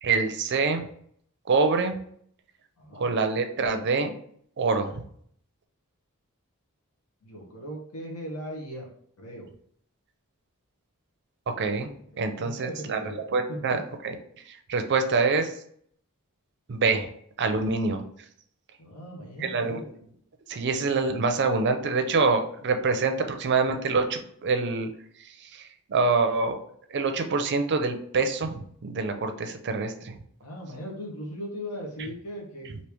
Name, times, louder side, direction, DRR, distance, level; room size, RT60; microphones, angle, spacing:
voice 1, 0.0-0.9 1.5-2.0 2.9-4.1 4.6-5.0 11.5-14.2 14.5-15.5 16.7-17.1 17.4-18.0 19.4-19.8 20.5-24.9 25.2-26.6 26.9-30.2 32.7-32.8, right 4 dB, 50° right, 7 dB, 0.5 m, -26 dB
voice 2, 2.8-3.1 7.2-8.9 9.2-9.5 12.1-13.2 13.5-13.8 18.8-19.8 30.4-32.8, equal, 80° left, -2 dB, 0.9 m, -38 dB
3.0 x 2.7 x 3.4 m, 0.64 s
head